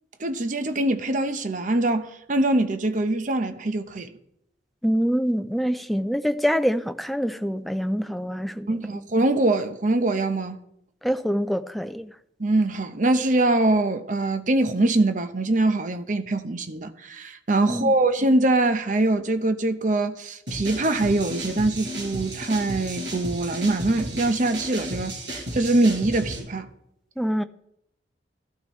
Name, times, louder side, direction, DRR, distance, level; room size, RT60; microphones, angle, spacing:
voice 1, 0.2-4.1 8.7-10.6 12.4-26.7, right 2 dB, 45° right, 0.8 m, -23 dB
voice 2, 4.8-9.1 11.0-12.1 17.7-17.9 27.2-27.4, equal, ahead, 0.4 m, -25 dB
sound 1, 20.5-26.4, right 1 dB, 80° right, 5.2 m, -34 dB
13.5 x 12.5 x 3.1 m
head